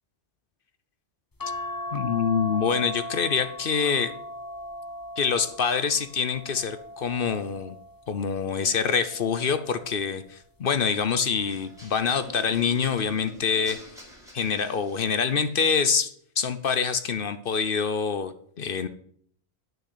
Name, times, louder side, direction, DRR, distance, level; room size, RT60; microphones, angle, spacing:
sound 1, 1.4-8.0 8.7-10.1 11.3-11.7 12.1-12.2, left 1 dB, 20° left, 0.8 m, -38 dB
voice 1, 1.9-4.1 5.2-7.8 8.1-13.8 14.3-18.9, left 6 dB, 60° left, 11 dB, 0.9 m, -26 dB
sound 2, 11.5-15.4, left 1 dB, 5° right, 4.7 m, -47 dB
9.2 x 6.6 x 8.0 m, 0.64 s
omnidirectional pair, 1.1 m